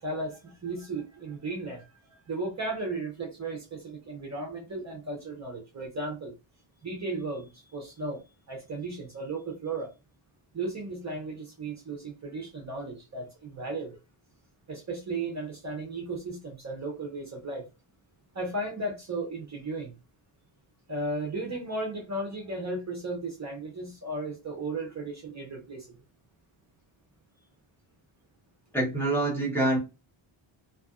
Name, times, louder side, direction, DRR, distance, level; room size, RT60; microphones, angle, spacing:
voice 1, 0.0-6.3 6.8-9.9 10.5-14.0 14.7-17.7 18.3-19.9 20.9-25.9, right 2 dB, 35° right, 0.6 m, -35 dB
voice 2, 28.7-29.8, right 1 dB, 5° left, 1.0 m, -26 dB
2.7 x 2.5 x 2.4 m
wide cardioid pair, 175°, 49 cm